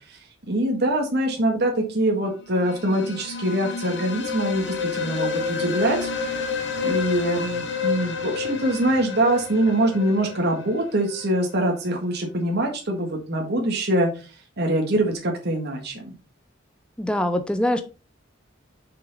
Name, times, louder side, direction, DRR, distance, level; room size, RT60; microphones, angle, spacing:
voice 1, 0.5-6.5 6.8-14.1 14.6-16.1, right 1 dB, 55° right, 1.7 m, -24 dB
sound 1, 2.5-11.3, left 5 dB, 65° left, 1.3 m, -29 dB
voice 2, 17.0-17.8, left 1 dB, 5° left, 0.6 m, -23 dB
6.5 x 5.9 x 4.0 m
head